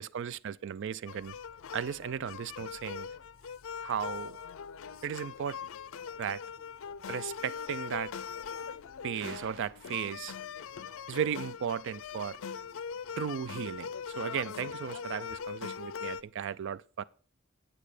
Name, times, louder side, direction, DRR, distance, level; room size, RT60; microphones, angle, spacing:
voice 1, 0.0-1.3 1.7-3.1 3.8-4.4 5.0-5.6 6.2-6.4 7.1-8.1 9.0-10.3 11.1-12.4 13.2-13.9 14.2-17.0, right 8 dB, 55° right, 0.3 m, -35 dB
sound 1, 1.1-16.2, left 6 dB, 60° left, 0.5 m, -41 dB
8.8 x 8.6 x 4.9 m
head